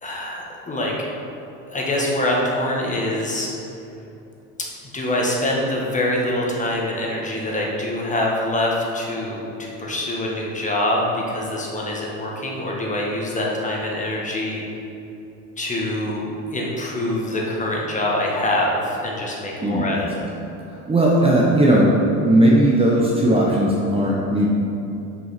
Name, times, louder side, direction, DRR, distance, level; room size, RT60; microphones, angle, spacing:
voice 1, 0.0-0.9 1.7-3.5 4.6-4.7 4.9-14.6 15.6-16.2 16.5-20.1, left 1 dB, 20° left, -3 dB, 1.5 m, -24 dB
voice 2, 19.6-20.0 20.9-21.9 22.2-24.5, right 1 dB, 15° right, -4 dB, 0.8 m, -17 dB
6.2 x 5.4 x 5.8 m, 2.8 s
cardioid pair, 120°, 37 cm